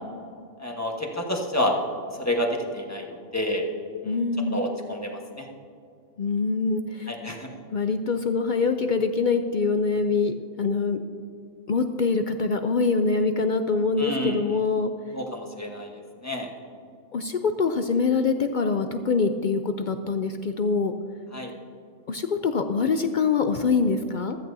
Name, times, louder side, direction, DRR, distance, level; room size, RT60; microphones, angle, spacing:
voice 1, 0.6-1.7 2.1-3.6 4.0-4.2 4.5-5.5 7.1-7.5 14.0-14.6 15.1-16.5 21.3-21.5, left 1 dB, 15° left, 1 dB, 1.2 m, -29 dB
voice 2, 4.1-4.6 6.2-7.1 7.7-11.0 11.7-14.9 17.1-20.9 22.1-24.4, left 4 dB, 65° left, 7 dB, 0.4 m, -24 dB
15.0 x 13.5 x 2.7 m, 2.3 s
omnidirectional pair, 1.4 m